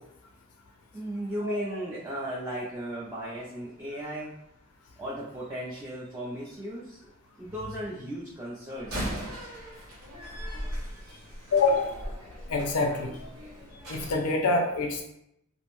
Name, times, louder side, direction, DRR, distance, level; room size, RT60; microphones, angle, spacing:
voice 1, 0.9-4.3 5.0-7.1 7.4-9.3 11.0-11.2, right 1 dB, 10° right, -7 dB, 0.3 m, -36 dB
Slam, 8.8-14.1, equal, 90° right, 0.9 m, -38 dB
voice 2, 11.5-12.0 12.5-13.1 13.9-15.0, left 3 dB, 80° left, 2 dB, 0.4 m, -25 dB
2.5 x 2.1 x 2.9 m, 0.80 s
head